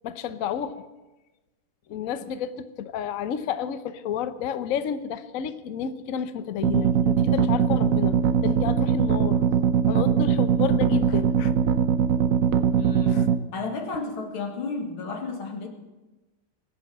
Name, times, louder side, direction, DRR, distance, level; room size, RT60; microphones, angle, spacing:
voice 1, 0.0-0.8 1.9-9.4 9.9-11.5 13.1-13.3, left 8 dB, 60° left, 11 dB, 0.9 m, -31 dB
sound 1, 6.6-13.4, right 7 dB, 65° right, 0.8 m, -21 dB
voice 2, 12.8-15.7, left 3 dB, 90° left, 3 dB, 2.7 m, -33 dB
21.0 x 7.4 x 7.7 m, 1.1 s
omnidirectional pair, 2.2 m